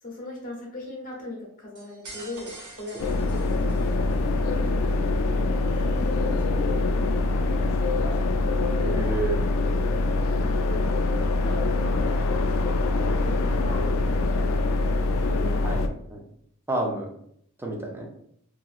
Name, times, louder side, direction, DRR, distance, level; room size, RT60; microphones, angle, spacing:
voice 1, 0.0-3.5 5.8-6.9 10.6-10.9 11.3-12.2 13.2-14.7 15.3-15.8, left 2 dB, 40° left, -1 dB, 0.9 m, -39 dB
sound 1, 1.8-4.3, right 2 dB, 80° right, 0.8 m, -45 dB
sound 2, 3.0-15.9, left 2 dB, 60° left, 0.3 m, -24 dB
voice 2, 8.8-9.4 15.6-15.8 16.1-16.2 16.7-17.1 17.6-18.1, right 2 dB, 10° right, -1 dB, 0.5 m, -30 dB
2.9 x 2.5 x 2.4 m, 0.69 s
head